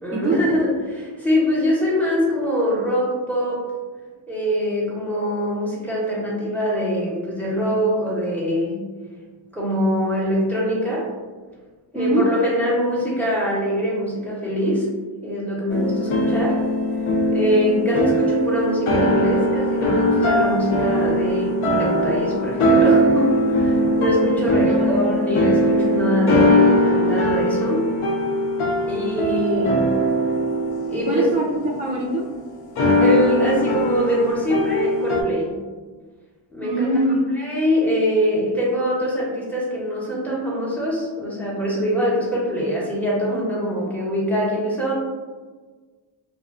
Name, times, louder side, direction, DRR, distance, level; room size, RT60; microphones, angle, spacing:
voice 1, 0.0-3.6 4.3-8.8 9.5-11.1 11.9-14.9 15.2-16.6 17.3-27.8 28.9-29.8 30.9-31.3 33.0-35.6 36.5-36.9 37.4-44.9, equal, 5° left, -6 dB, 0.9 m, -23 dB
voice 2, 11.9-12.3 24.6-25.3 31.0-32.2 36.6-37.2, right 2 dB, 15° right, -2 dB, 0.4 m, -23 dB
sound 1, 15.7-32.1 32.8-35.2, equal, 80° left, 0.6 m, -20 dB
2.3 x 2.3 x 2.4 m, 1.4 s
cardioid pair, 50°, 49 cm